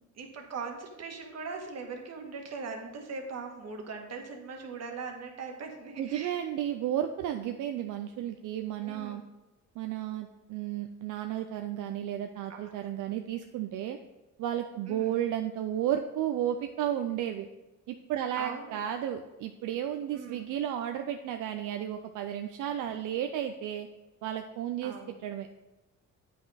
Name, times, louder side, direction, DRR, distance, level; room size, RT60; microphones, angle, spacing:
voice 1, 0.2-6.5 8.8-9.2 12.5-12.9 14.9-15.2 18.4-18.8 20.1-20.4 22.8-23.0 24.8-25.1, right 4 dB, 60° right, 3 dB, 1.5 m, -41 dB
voice 2, 6.0-9.2 9.8-14.0 14.4-17.5 17.9-23.9 24.2-24.9 25.2-25.5, right 11 dB, 85° right, 6 dB, 0.5 m, -33 dB
8.3 x 5.6 x 4.0 m, 1.1 s
cardioid pair, 90°, 30 cm